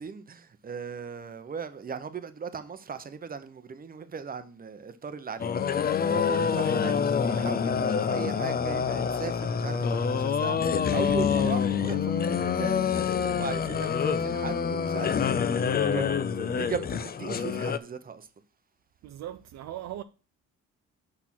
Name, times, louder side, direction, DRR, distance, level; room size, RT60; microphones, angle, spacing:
voice 1, 0.0-18.3, right 6 dB, 30° right, 0.8 m, -38 dB
sound 1, 5.4-17.8, left 6 dB, 30° left, 0.4 m, -26 dB
voice 2, 19.0-20.0, right 12 dB, 65° right, 0.4 m, -39 dB
6.2 x 4.4 x 5.9 m
cardioid pair, 90°, 30 cm